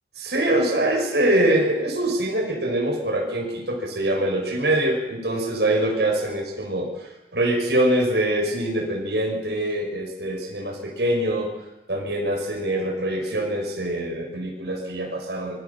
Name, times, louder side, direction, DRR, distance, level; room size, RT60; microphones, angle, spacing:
voice 1, 0.2-11.5 11.9-15.6, right 1 dB, 70° right, 0 dB, 6.4 m, -24 dB
26.5 x 24.0 x 7.3 m, 1.0 s
head